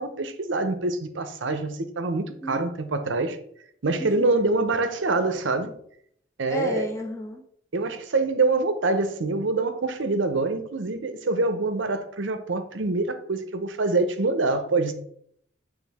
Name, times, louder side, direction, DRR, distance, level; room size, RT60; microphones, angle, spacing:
voice 1, 0.0-3.4 3.8-5.7 6.4-6.9 7.7-14.9, right 3 dB, 70° right, 0.7 m, -25 dB
voice 2, 4.0-4.4 6.5-7.4, equal, 15° left, 0.8 m, -32 dB
8.4 x 3.3 x 3.5 m
head